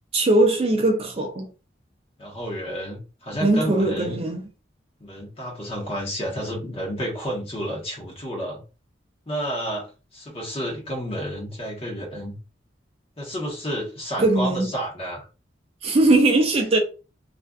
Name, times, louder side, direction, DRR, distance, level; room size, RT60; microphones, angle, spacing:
voice 1, 0.1-1.5 3.4-4.5 14.2-14.7 15.8-16.8, right 2 dB, 30° right, 0.4 m, -20 dB
voice 2, 2.2-4.1 5.0-8.6 9.3-12.4 13.2-15.3, equal, 30° left, 0.9 m, -31 dB
2.5 x 2.3 x 2.2 m
head